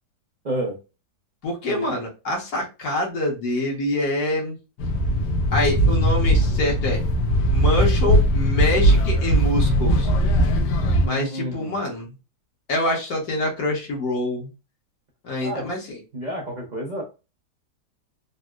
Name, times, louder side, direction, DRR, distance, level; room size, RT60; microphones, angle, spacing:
voice 1, 0.4-0.8 1.7-1.9 11.0-11.8 15.4-15.7 16.1-17.0, right 1 dB, 50° right, -1 dB, 0.5 m, -30 dB
voice 2, 1.4-4.6 5.5-7.0 7.5-10.1 11.0-12.1 12.7-14.5 15.2-16.0, left 1 dB, 60° left, -1 dB, 1.6 m, -25 dB
sound 1, 4.8-11.1, equal, 85° left, 1.2 m, -19 dB
4.0 x 2.1 x 2.3 m, 0.29 s
omnidirectional pair, 1.8 m